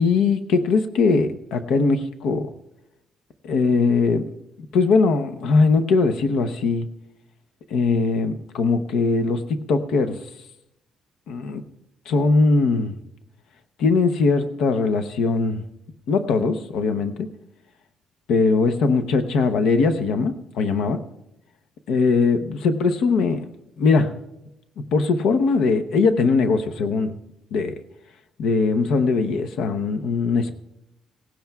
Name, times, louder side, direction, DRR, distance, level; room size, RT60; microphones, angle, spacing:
voice 1, 0.0-2.5 3.4-4.3 4.6-6.9 7.7-10.2 11.3-11.6 12.1-12.9 13.8-15.6 16.1-17.3 18.3-21.0 21.9-23.4 23.8-24.1 24.9-27.1 27.5-27.8 28.4-30.6, left 4 dB, 80° left, 8 dB, 0.8 m, -20 dB
18.5 x 16.0 x 2.3 m, 0.86 s
cardioid pair, 150°, 0 cm